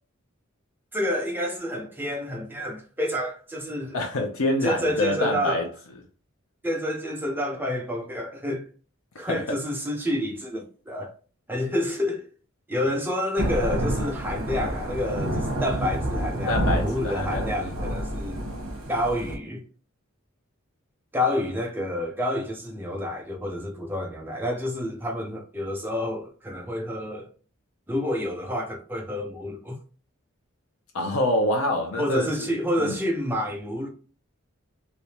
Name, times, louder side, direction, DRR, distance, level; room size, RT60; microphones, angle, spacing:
voice 1, 0.9-4.0 4.6-5.6 6.6-8.7 9.2-11.1 11.5-12.3 12.7-18.4 18.9-19.6 21.1-27.3 27.9-29.8 32.0-33.9, left 1 dB, 10° right, 0.7 m, -29 dB
voice 2, 3.9-5.7 9.1-9.6 16.5-17.7 30.9-32.5 32.8-33.0, left 1 dB, 85° left, 0.6 m, -26 dB
Thunder / Rain, 13.4-19.4, right 1 dB, 75° right, 1.1 m, -28 dB
3.3 x 2.8 x 2.8 m
head